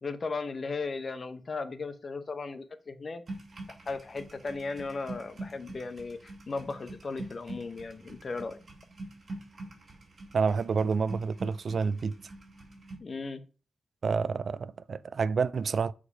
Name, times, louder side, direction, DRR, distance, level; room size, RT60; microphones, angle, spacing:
voice 1, 0.0-3.2 3.9-8.6 13.0-13.4, left 4 dB, 40° left, 0.8 m, -36 dB
sound 1, 3.3-13.0, right 2 dB, 35° right, 2.4 m, -45 dB
voice 2, 10.3-12.1 14.0-15.9, right 5 dB, 55° right, 0.4 m, -28 dB
6.6 x 4.9 x 5.6 m
wide cardioid pair, 145°, 0 cm